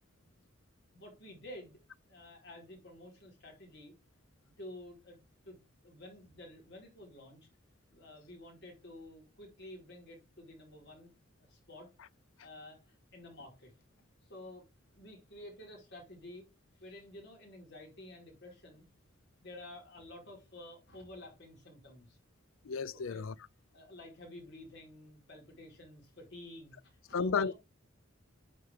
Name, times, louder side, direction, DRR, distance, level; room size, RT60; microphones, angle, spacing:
voice 1, 0.9-1.8 2.1-3.9 4.6-5.2 5.4-5.6 5.8-7.4 7.9-11.1 11.4-11.9 12.4-13.7 14.2-16.5 16.8-18.8 19.4-22.2 22.9-23.2 23.7-27.5, left 1 dB, 60° left, 4.4 m, -51 dB
voice 2, 22.6-23.3 27.1-27.5, left 5 dB, 85° left, 0.5 m, -32 dB
9.2 x 4.9 x 3.6 m
head